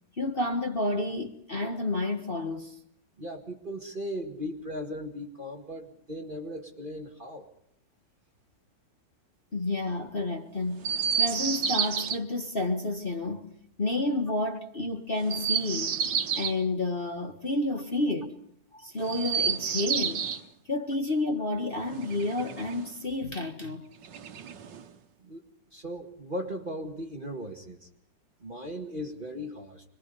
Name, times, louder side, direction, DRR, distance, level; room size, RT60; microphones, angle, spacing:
voice 1, 0.2-2.7 9.5-10.9 11.2-13.5 13.8-16.0 16.3-18.4 18.7-20.3 20.7-23.9, left 2 dB, 30° left, 1.5 m, -30 dB
voice 2, 3.2-7.5 25.2-25.4 25.7-27.9 28.4-29.8, equal, 30° right, 2.1 m, -37 dB
Chirp tweet, 10.8-12.2 15.2-16.6 19.0-20.4 21.8-22.9 24.0-24.9, right 7 dB, 80° right, 1.9 m, -30 dB
26.0 x 22.0 x 5.4 m
omnidirectional pair, 1.9 m